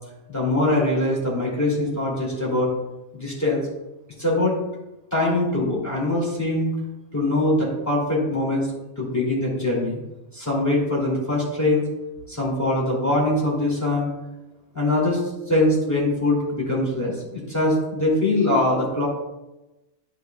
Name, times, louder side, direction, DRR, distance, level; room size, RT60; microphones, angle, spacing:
voice 1, 0.3-2.7 3.1-3.6 4.2-4.6 5.1-6.7 7.1-8.7 9.0-10.0 10.3-11.8 12.3-14.1 14.7-15.2 15.5-19.1, left 1 dB, 15° left, -4 dB, 2.4 m, -22 dB
10.0 x 6.4 x 2.3 m, 0.98 s
omnidirectional pair, 1.2 m